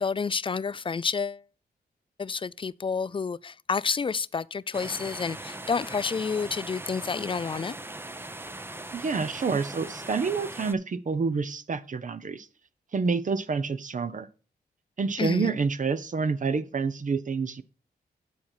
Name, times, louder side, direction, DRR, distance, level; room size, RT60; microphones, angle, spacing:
voice 1, 0.0-1.4 2.2-7.7 15.2-15.5, left 5 dB, 30° left, 0.4 m, -29 dB
sound 1, 4.7-10.7, right 1 dB, 15° right, 0.7 m, -40 dB
voice 2, 8.9-12.5 12.9-14.3 15.0-17.6, right 4 dB, 50° right, 0.9 m, -28 dB
9.7 x 4.6 x 5.7 m
cardioid pair, 70°, 17 cm